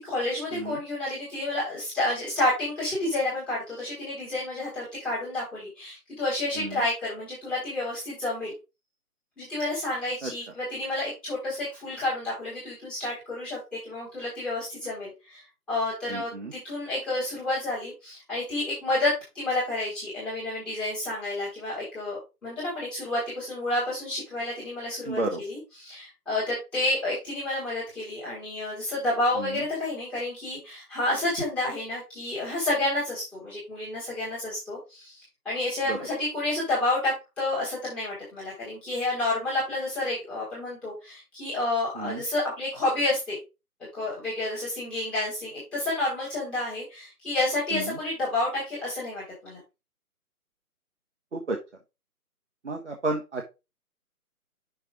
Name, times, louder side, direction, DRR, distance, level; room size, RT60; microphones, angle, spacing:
voice 1, 0.0-8.5 9.4-15.4 15.7-35.2 35.4-43.4 43.9-49.6, left 2 dB, ahead, -11 dB, 1.4 m, -30 dB
voice 2, 16.1-16.5 25.1-25.4 35.9-36.0 42.0-42.2 47.7-48.0 51.3-51.6 52.6-53.5, right 2 dB, 50° right, 2 dB, 1.2 m, -31 dB
6.0 x 4.5 x 4.8 m, 0.26 s
figure-of-eight pair, 155°, 46 cm